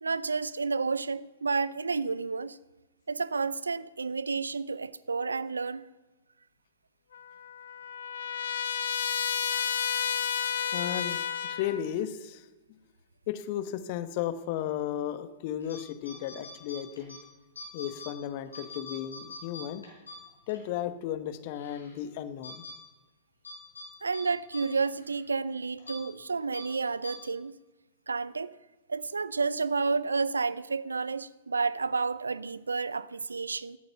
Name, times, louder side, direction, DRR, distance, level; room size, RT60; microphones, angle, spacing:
voice 1, 0.0-2.6 3.1-5.8 24.0-27.6 28.1-28.6 28.9-33.8, right 4 dB, 85° right, 0.5 m, -30 dB
Trumpet, 7.1-11.9, left 8 dB, 70° left, 0.9 m, -31 dB
voice 2, 10.7-11.2 11.5-12.5 13.3-17.2 17.7-19.8 20.5-22.6, left 11 dB, 45° left, 1.1 m, -34 dB
sound 1, 15.6-15.8 16.1-17.2 17.6-18.1 18.5-20.6 21.0-21.1 21.6-21.9 22.4-22.7 23.4-23.9 24.1-24.2 24.5-24.6 25.0-25.1 25.8-26.0 26.5-26.6 27.0-27.1, left 1 dB, 85° left, 5.0 m, -43 dB
17.0 x 9.4 x 5.8 m
figure-of-eight pair, 105°, 0 cm